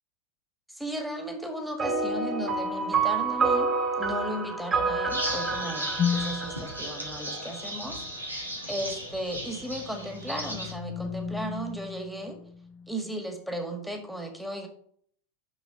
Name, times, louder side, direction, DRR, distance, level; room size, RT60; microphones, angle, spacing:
voice 1, 0.7-8.4 8.7-12.4 12.9-14.7, right 1 dB, ahead, 3 dB, 1.8 m, -36 dB
sound 1, 1.8-7.6, right 4 dB, 25° right, 2.3 m, -28 dB
sound 2, 5.1-10.7, right 1 dB, 85° right, 1.9 m, -36 dB
sound 3, 6.0-6.6 9.4-12.9, left 7 dB, 30° left, 0.5 m, -33 dB
7.0 x 6.3 x 6.0 m, 0.63 s
figure-of-eight pair, 85°, 0 cm